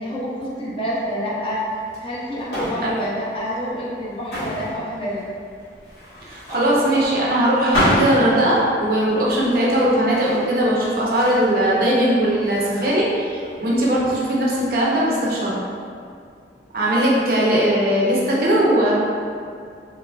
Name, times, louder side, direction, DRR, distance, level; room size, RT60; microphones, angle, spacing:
voice 1, 0.0-1.6 2.0-5.2, equal, 30° left, -6 dB, 0.5 m, -27 dB
sound 1, 1.8-14.8, equal, 70° left, 1.0 m, -29 dB
voice 2, 6.3-15.6 16.7-19.0, right 1 dB, 55° right, -4 dB, 0.5 m, -19 dB
2.9 x 2.4 x 2.3 m, 2.3 s
head